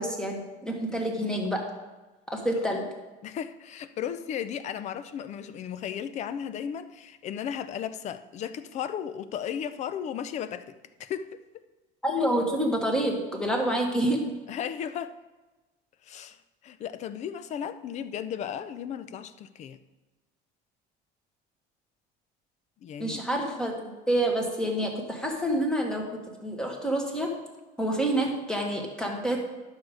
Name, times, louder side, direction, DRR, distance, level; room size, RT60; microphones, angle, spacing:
voice 1, 0.0-1.6 2.3-2.9 12.0-14.4 23.0-26.1 26.4-27.3 27.8-29.5, right 1 dB, 5° left, 1 dB, 1.3 m, -28 dB
voice 2, 3.2-11.4 14.5-15.2 16.0-16.4 16.6-19.8 22.8-23.2, left 8 dB, 35° left, 12 dB, 0.4 m, -35 dB
11.5 x 6.4 x 4.8 m, 1.2 s
cardioid pair, 170°, 20 cm